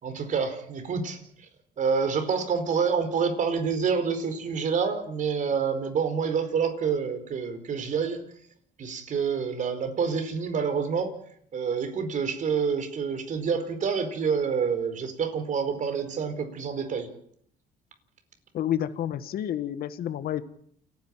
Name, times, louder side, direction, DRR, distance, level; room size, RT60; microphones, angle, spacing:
voice 1, 0.0-1.5 1.8-8.2 8.8-11.1 11.5-17.1, right 6 dB, 50° right, 8 dB, 4.6 m, -27 dB
voice 2, 18.5-20.4, left 11 dB, 65° left, 12 dB, 1.6 m, -29 dB
29.0 x 10.5 x 9.0 m, 0.65 s
cardioid pair, 110°, 17 cm